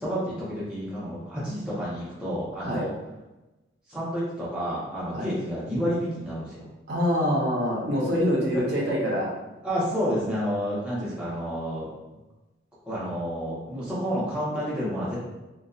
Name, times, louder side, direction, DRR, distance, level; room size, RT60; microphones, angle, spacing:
voice 1, 0.0-2.9 3.9-6.6 9.6-11.9 12.9-15.2, equal, 5° right, -9 dB, 0.8 m, -30 dB
voice 2, 6.9-9.3, equal, 65° right, -3 dB, 0.6 m, -25 dB
2.7 x 2.2 x 2.3 m, 1.1 s
head